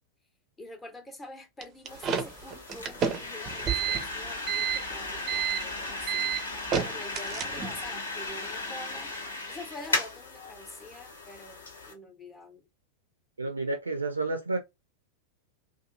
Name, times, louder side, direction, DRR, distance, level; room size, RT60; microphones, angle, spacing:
voice 1, 0.6-6.4 6.8-9.1 9.5-12.6, left 1 dB, 15° left, 0.8 m, -46 dB
sound 1, 1.6-7.9, right 8 dB, 30° right, 0.5 m, -30 dB
sound 2, 1.9-11.9, left 2 dB, 75° left, 1.3 m, -36 dB
voice 2, 13.4-14.6, right 3 dB, 80° right, 0.4 m, -30 dB
2.6 x 2.5 x 2.6 m
figure-of-eight pair, 90°, 0 cm